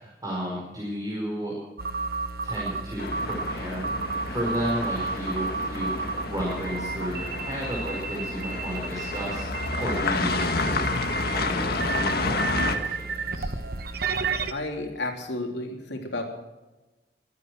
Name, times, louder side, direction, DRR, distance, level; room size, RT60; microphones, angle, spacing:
voice 1, 0.0-1.5 2.4-13.5, equal, 20° right, -3 dB, 5.0 m, -33 dB
sound 1, 1.8-14.5, right 4 dB, 60° right, 1.2 m, -32 dB
sound 2, 3.0-12.8, left 3 dB, 60° left, 1.8 m, -30 dB
voice 2, 14.5-16.2, left 2 dB, 80° left, 2 dB, 3.4 m, -32 dB
23.5 x 9.5 x 6.3 m, 1.1 s
head